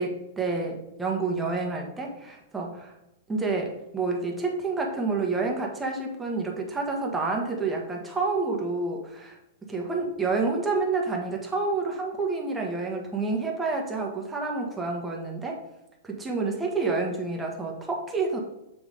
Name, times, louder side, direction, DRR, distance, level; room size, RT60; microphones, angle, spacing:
voice 1, 0.0-2.9 3.3-9.4 9.7-15.6 16.0-18.4, right 3 dB, 10° right, 0 dB, 1.3 m, -29 dB
7.2 x 3.0 x 5.1 m, 0.94 s
hypercardioid pair, 125°, 0 cm